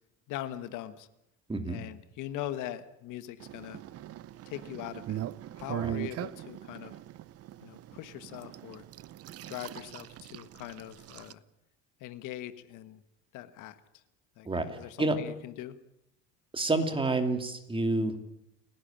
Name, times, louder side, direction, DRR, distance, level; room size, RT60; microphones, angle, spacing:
voice 1, 0.3-1.1 1.7-3.8 4.5-5.2 5.6-6.9 7.6-8.8 9.4-11.4 12.0-13.0 13.3-13.8 14.4-15.8, left 12 dB, 65° left, 12 dB, 1.4 m, -41 dB
voice 2, 1.5-1.8 5.8-5.9 14.4-15.2 16.5-18.2, right 2 dB, 15° right, 7 dB, 2.7 m, -29 dB
sound 1, 3.4-11.3, right 13 dB, 45° right, 0.7 m, -41 dB
29.5 x 11.0 x 8.9 m, 0.81 s
cardioid pair, 115°, 33 cm